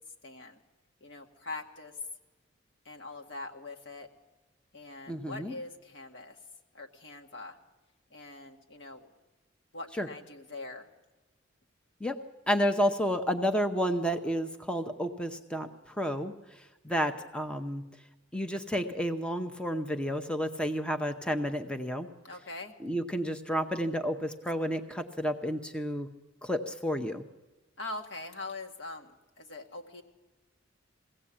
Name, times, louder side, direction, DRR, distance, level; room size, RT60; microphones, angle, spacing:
voice 1, 0.2-0.6 1.0-2.0 2.9-4.1 4.7-6.4 6.7-7.6 8.1-9.1 9.7-10.9 22.2-22.7 27.8-30.0, left 2 dB, 65° left, 2 dB, 2.0 m, -43 dB
voice 2, 5.1-5.5 10.0-10.1 12.0-12.2 12.5-17.8 18.3-22.1 22.8-26.1 26.4-27.2, equal, 5° left, 6 dB, 0.7 m, -31 dB
22.0 x 16.5 x 8.7 m, 1.1 s
head